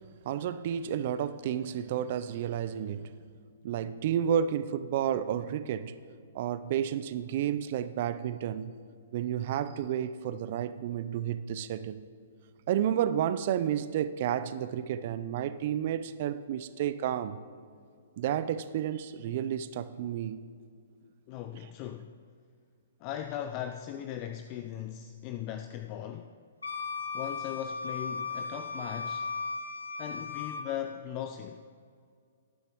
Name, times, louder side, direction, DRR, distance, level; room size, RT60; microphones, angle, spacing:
voice 1, 0.2-3.1 3.6-6.0 6.3-8.7 9.1-12.0 12.7-17.4 18.2-20.4, right 9 dB, 50° right, 0.5 m, -31 dB
voice 2, 21.3-22.1 23.0-26.4 27.1-29.3 30.0-31.6, left 10 dB, 35° left, 0.5 m, -38 dB
Wind instrument woodwind instrument, 26.6-30.7, left 4 dB, 85° left, 1.1 m, -36 dB
18.5 x 10.0 x 3.1 m
figure-of-eight pair, 120°, 0 cm